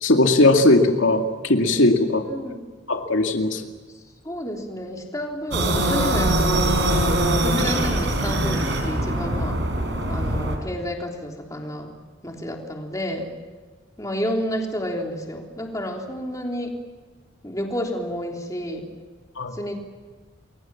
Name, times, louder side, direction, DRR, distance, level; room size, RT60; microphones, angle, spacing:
voice 1, 0.0-2.2 2.9-3.6 19.4-19.5, left 2 dB, 80° left, 4 dB, 2.2 m, -18 dB
voice 2, 2.2-2.6 3.9-9.6 10.1-11.9 12.2-13.3 14.0-16.7 17.4-18.9 19.5-19.7, equal, 15° left, 1 dB, 3.3 m, -30 dB
sound 1, 5.5-10.6, right 1 dB, 65° right, 4.8 m, -22 dB
29.5 x 22.5 x 7.5 m, 1.4 s
head